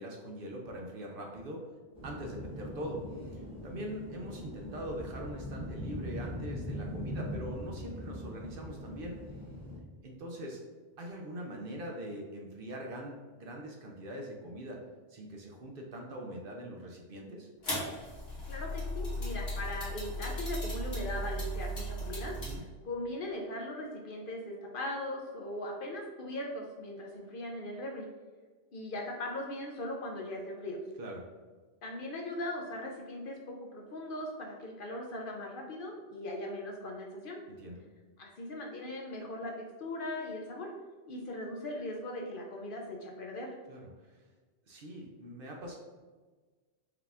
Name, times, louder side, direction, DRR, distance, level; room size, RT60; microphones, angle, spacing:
voice 1, 0.0-1.7 2.0-9.2 10.0-10.6 11.0-14.8 15.1-17.5 22.4-22.6 31.0-31.3 37.6-37.8 43.7-44.2 44.7-45.8, equal, 60° right, 0 dB, 0.7 m, -42 dB
sound 1, 1.9-9.8, equal, 5° right, 1.1 m, -41 dB
sound 2, 17.6-22.6, equal, 80° left, 1.7 m, -36 dB
voice 2, 18.5-22.5 22.8-28.1 28.7-30.8 31.8-37.4 38.2-40.7 41.1-43.6, left 1 dB, 55° left, 0 dB, 0.7 m, -39 dB
4.8 x 2.4 x 3.3 m, 1.4 s
omnidirectional pair, 1.2 m